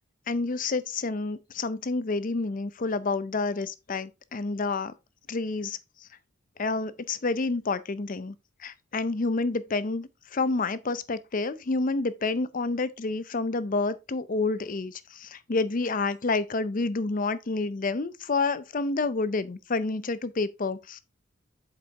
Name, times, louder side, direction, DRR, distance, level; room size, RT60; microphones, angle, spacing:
voice 1, 0.3-4.9 5.3-5.8 6.6-21.0, left 3 dB, 40° left, 0.6 m, -29 dB
7.8 x 5.0 x 3.7 m
head